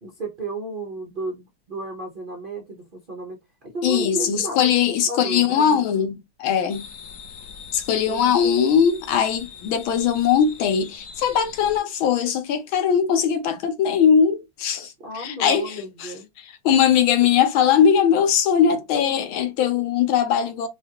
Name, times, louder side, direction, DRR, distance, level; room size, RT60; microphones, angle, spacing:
voice 1, 0.0-6.1 8.0-8.7 15.0-16.3, right 2 dB, 85° right, 0.4 m, -33 dB
voice 2, 3.8-6.1 6.4-6.8 7.7-16.1 16.6-20.7, left 8 dB, 75° left, 1.6 m, -20 dB
sound 1, 6.7-11.8, left 6 dB, 60° left, 0.9 m, -42 dB
5.2 x 2.4 x 2.8 m
omnidirectional pair, 2.3 m